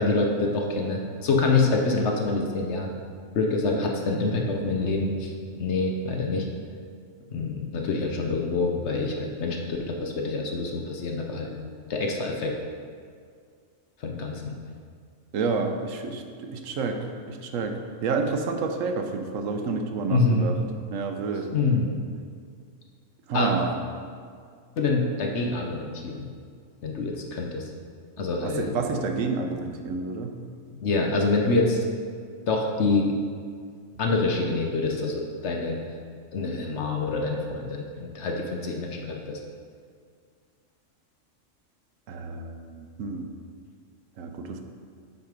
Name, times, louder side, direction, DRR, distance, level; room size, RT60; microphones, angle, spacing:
voice 1, 0.0-2.9 3.3-5.3 5.6-6.5 7.3-11.5 11.9-12.5 14.0-14.6 20.1-20.5 21.5-21.9 23.3-23.5 24.8-26.3 26.8-27.7 28.2-28.7 30.8-31.8 32.5-33.1 34.0-35.8 36.3-37.8 38.1-39.4, left 3 dB, 65° left, 1 dB, 1.0 m, -26 dB
voice 2, 15.3-20.6 20.9-21.5 23.3-23.7 28.4-30.3 42.1-43.3 44.2-44.6, right 4 dB, 80° right, 5 dB, 1.1 m, -29 dB
5.8 x 5.5 x 5.1 m, 2.1 s
omnidirectional pair, 1.3 m